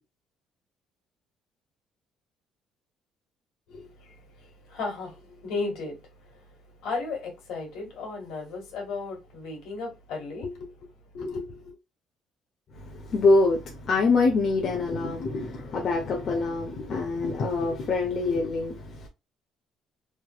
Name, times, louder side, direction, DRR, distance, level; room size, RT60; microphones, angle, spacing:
voice 1, 3.7-6.0 6.3-6.5 6.8-10.7 11.1-11.7, left 3 dB, 75° left, 1.5 m, -35 dB
voice 2, 12.8-19.1, left 3 dB, 45° left, 0.8 m, -25 dB
3.3 x 2.9 x 2.2 m
cardioid pair, 145°, 0 cm